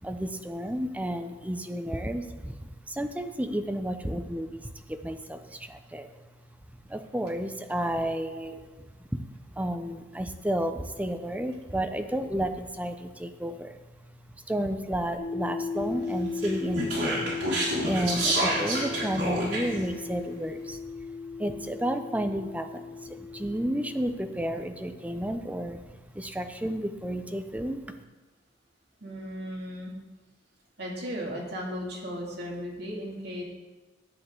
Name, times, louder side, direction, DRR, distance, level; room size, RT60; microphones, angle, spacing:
voice 1, 0.0-6.1 6.9-8.9 9.1-13.8 14.1-17.2 17.8-21.1 21.4-27.8, right 1 dB, 10° right, 7 dB, 0.6 m, -32 dB
voice 2, 8.2-8.8 10.1-10.2 20.1-20.2 29.0-29.9 30.8-33.4, equal, 65° right, -2 dB, 2.3 m, -37 dB
sound 1, 15.2-24.0, left 5 dB, 45° left, 3.0 m, -36 dB
Speech, 16.4-19.8, right 1 dB, 80° right, 3.6 m, -28 dB
10.5 x 8.4 x 3.7 m, 1.2 s
head